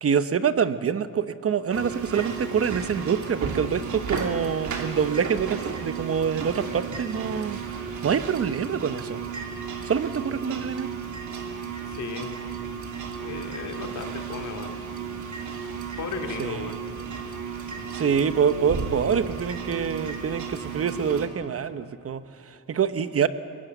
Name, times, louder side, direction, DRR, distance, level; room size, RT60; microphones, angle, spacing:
voice 1, 0.0-7.6 8.0-9.2 9.8-10.9 16.4-16.6 17.9-23.3, right 7 dB, 45° right, 12 dB, 1.0 m, -26 dB
sound 1, 1.7-21.3, right 5 dB, 60° right, 2.8 m, -34 dB
voice 2, 11.8-12.3 13.2-15.1 15.5-15.6 16.0-16.8 17.3-17.5 17.7-17.8, left 6 dB, 60° left, 5 dB, 2.5 m, -36 dB
23.5 x 20.5 x 8.0 m, 2.5 s
cardioid pair, 110°, 33 cm